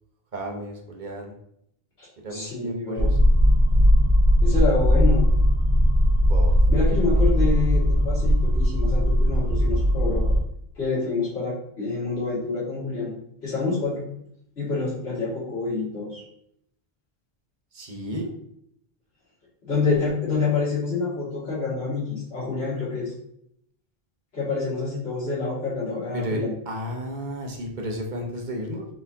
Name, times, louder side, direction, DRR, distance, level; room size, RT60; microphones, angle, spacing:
voice 1, 0.3-1.3 2.2-3.2 6.3-6.8 7.1-7.3 17.7-18.3 26.1-28.9, equal, 50° right, 1 dB, 0.9 m, -33 dB
voice 2, 2.0-3.1 4.4-5.2 6.7-10.2 10.8-13.2 13.4-14.0 14.6-16.2 19.6-23.1 24.3-26.5, left 4 dB, 90° left, -8 dB, 2.3 m, -27 dB
sound 1, 3.0-10.4, equal, 55° left, 1.3 m, -19 dB
4.3 x 4.2 x 2.7 m, 0.71 s
omnidirectional pair, 1.1 m